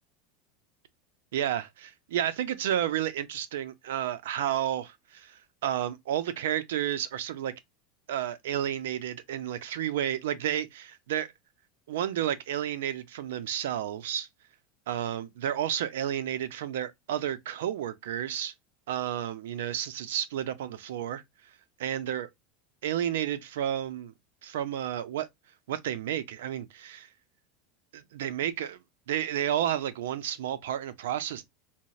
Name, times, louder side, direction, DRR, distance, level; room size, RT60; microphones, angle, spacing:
voice 1, 1.3-7.5 8.1-11.3 11.9-14.3 14.9-18.5 18.9-21.2 21.8-22.3 22.8-24.1 24.4-25.3 25.7-27.1 27.9-28.8 29.1-31.4, right 10 dB, 85° right, 0.4 m, -31 dB
3.9 x 2.0 x 2.3 m
supercardioid pair, 125°, 0 cm